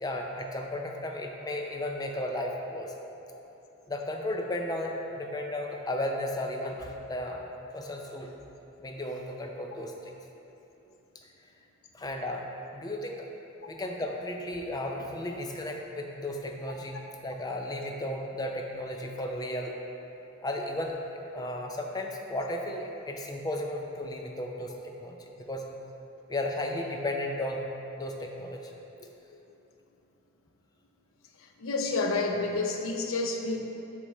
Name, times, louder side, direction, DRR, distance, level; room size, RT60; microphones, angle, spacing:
voice 1, 0.0-2.9 3.9-8.3 8.8-10.1 11.9-13.3 13.7-19.7 20.4-21.0 21.3-25.7 26.3-27.7 28.0-28.7, left 1 dB, 20° left, 2 dB, 0.4 m, -34 dB
voice 2, 31.6-33.6, left 3 dB, 85° left, 3 dB, 0.6 m, -29 dB
7.3 x 3.6 x 4.2 m, 2.9 s
head